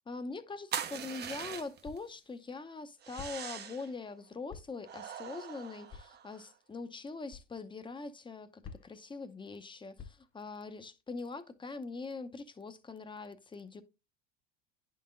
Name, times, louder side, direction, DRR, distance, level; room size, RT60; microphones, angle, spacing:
voice 1, 0.1-13.8, left 3 dB, 15° left, 0.7 m, -43 dB
sound 1, 0.7-2.0 3.0-3.9 4.8-6.5, right 8 dB, 25° right, 0.6 m, -42 dB
sound 2, 1.8-2.2 3.2-3.6 4.5-4.9 5.9-6.2 7.3-7.5 8.6-9.1 10.0-10.4, left 5 dB, 35° left, 1.1 m, -50 dB
10.5 x 3.9 x 2.5 m
hypercardioid pair, 85°, 38 cm